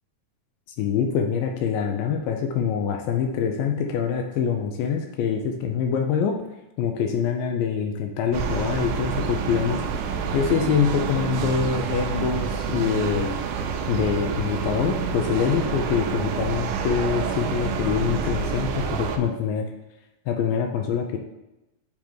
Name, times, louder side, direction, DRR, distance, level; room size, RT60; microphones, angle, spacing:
voice 1, 0.8-6.4 6.8-9.8 10.3-13.4 13.9-19.7 20.3-21.2, left 7 dB, 80° left, 4 dB, 2.2 m, -25 dB
sound 1, 8.3-19.2, right 6 dB, 90° right, 2.5 m, -28 dB
7.2 x 3.5 x 4.5 m, 0.94 s
omnidirectional pair, 4.3 m